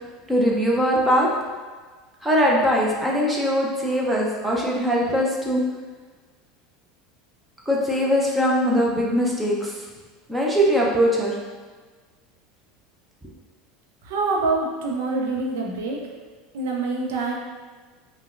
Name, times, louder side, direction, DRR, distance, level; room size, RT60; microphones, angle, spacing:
voice 1, 0.3-1.3 2.2-5.6 7.7-9.9 10.3-11.4, equal, 10° right, -3 dB, 0.7 m, -21 dB
voice 2, 14.0-16.0 16.5-17.3, right 3 dB, 65° right, -1 dB, 0.6 m, -25 dB
5.4 x 2.2 x 2.5 m, 1.4 s
figure-of-eight pair, 75°, 0 cm